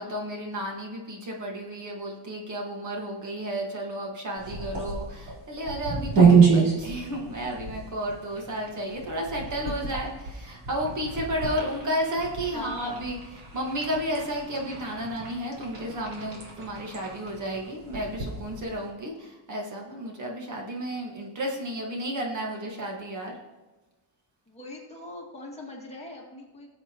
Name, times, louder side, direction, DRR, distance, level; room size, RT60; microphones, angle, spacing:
voice 1, 0.0-13.2 13.5-23.4, equal, 45° right, 0 dB, 1.7 m, -32 dB
sound 1, 4.4-18.9, right 5 dB, 75° right, 3.9 m, -28 dB
voice 2, 12.5-13.0 24.5-26.7, left 2 dB, 15° left, -3 dB, 2.2 m, -41 dB
20.0 x 7.7 x 3.0 m, 1.2 s
wide cardioid pair, 175°, 42 cm